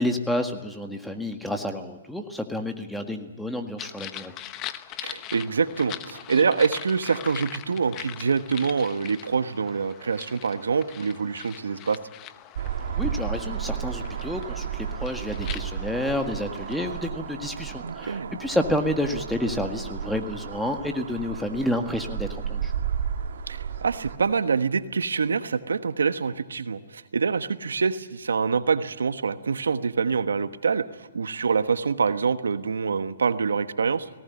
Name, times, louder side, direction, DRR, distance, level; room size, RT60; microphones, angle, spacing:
voice 1, 0.0-4.3 13.0-22.7, left 1 dB, ahead, 5 dB, 1.7 m, -29 dB
sound 1, 3.8-17.0, left 12 dB, 25° left, 1.0 m, -42 dB
voice 2, 5.0-12.0 17.8-18.3 23.5-34.1, right 5 dB, 85° right, 11 dB, 1.3 m, -25 dB
sound 2, 12.6-24.2, right 8 dB, 65° right, 2.3 m, -33 dB
18.5 x 18.5 x 9.7 m, 1.2 s
hypercardioid pair, 140°, 0 cm